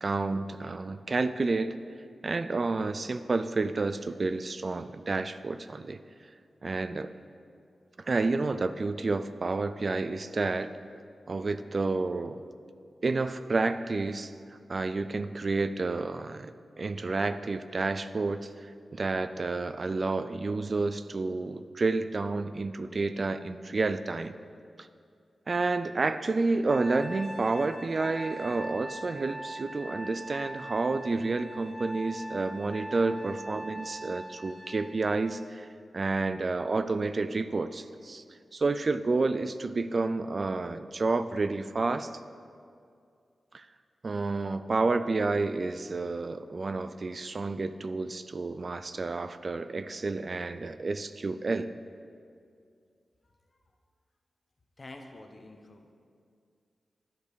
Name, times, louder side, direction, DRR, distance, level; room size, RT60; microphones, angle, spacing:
voice 1, 0.0-1.7 2.2-6.0 6.6-7.1 8.0-10.7 11.3-12.4 13.0-14.3 14.7-16.5 16.8-24.3 25.5-35.7 35.9-38.2 38.5-42.1 43.5-43.7 44.0-51.7, right 3 dB, 50° right, 11 dB, 0.3 m, -30 dB
Trumpet, 26.7-35.2, right 1 dB, 30° right, 1.3 m, -42 dB
voice 2, 54.8-55.9, left 2 dB, 45° left, 4 dB, 0.9 m, -48 dB
10.5 x 5.1 x 4.8 m, 2.3 s
cardioid pair, 55°, 0 cm